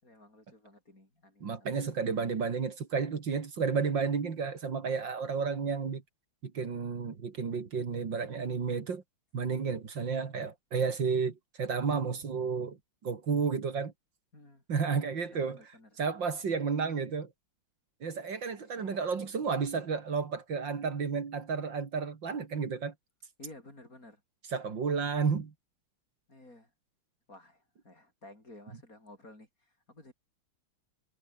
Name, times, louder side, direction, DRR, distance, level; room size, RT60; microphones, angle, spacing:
voice 1, 0.0-2.0 14.3-14.6 15.2-16.0 18.6-19.1 23.4-24.2 26.3-26.7 27.3-30.1, left 2 dB, 40° left, 7.5 m, -54 dB
voice 2, 1.4-6.0 6.4-9.0 9.3-12.8 13.0-13.9 14.7-15.6 16.0-17.3 18.0-22.9 24.5-25.5, right 5 dB, 65° right, 3.0 m, -32 dB
omnidirectional pair, 2.2 m